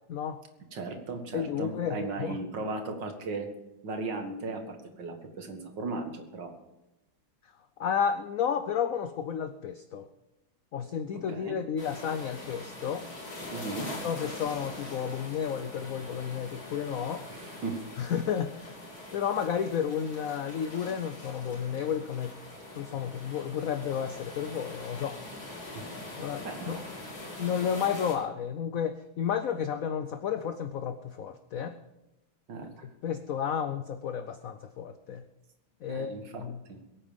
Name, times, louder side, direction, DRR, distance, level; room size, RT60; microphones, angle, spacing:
voice 1, 0.1-0.4 1.3-2.4 7.8-10.1 10.7-13.1 13.8-17.3 18.0-18.8 19.1-22.3 22.7-25.2 26.2-26.8 27.4-31.8 33.0-35.2 35.8-36.6, left 8 dB, 65° left, 10 dB, 0.8 m, -32 dB
voice 2, 0.7-3.5 3.8-6.5 11.3-11.6 13.5-13.9 17.3-17.8 25.7-26.8 32.5-32.9 35.9-36.8, right 3 dB, 65° right, 5 dB, 2.4 m, -37 dB
sound 1, 11.8-28.1, left 1 dB, 85° left, 4.0 m, -43 dB
22.5 x 8.8 x 5.2 m, 0.94 s
omnidirectional pair, 2.1 m